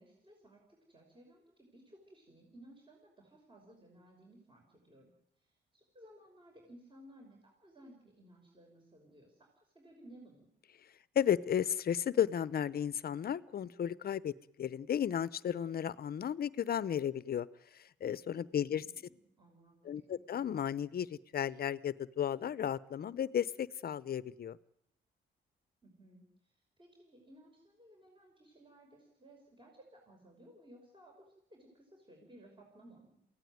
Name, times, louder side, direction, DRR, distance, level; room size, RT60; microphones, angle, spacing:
voice 1, 0.0-5.1 5.4-10.5 18.7-20.2 25.8-31.2 31.5-33.2, right 1 dB, 25° right, 1 dB, 5.8 m, -59 dB
voice 2, 11.1-17.5 17.7-18.8 19.8-24.6, left 9 dB, 50° left, 18 dB, 0.8 m, -34 dB
23.0 x 16.5 x 9.4 m, 0.81 s
cardioid pair, 90°, 20 cm